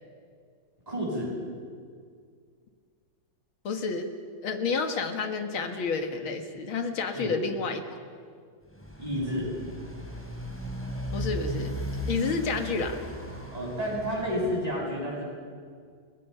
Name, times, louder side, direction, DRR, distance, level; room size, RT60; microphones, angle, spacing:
voice 1, 0.9-1.4 7.1-7.3 9.0-9.5 13.5-15.3, equal, 15° right, -3 dB, 7.7 m, -30 dB
voice 2, 3.6-4.1 4.4-7.8 11.1-11.8 12.1-13.0, left 4 dB, 85° left, 5 dB, 2.4 m, -30 dB
Motorcycle, 8.6-14.6, equal, 5° left, 4.5 m, -36 dB
29.5 x 22.5 x 5.7 m, 2.1 s
omnidirectional pair, 2.2 m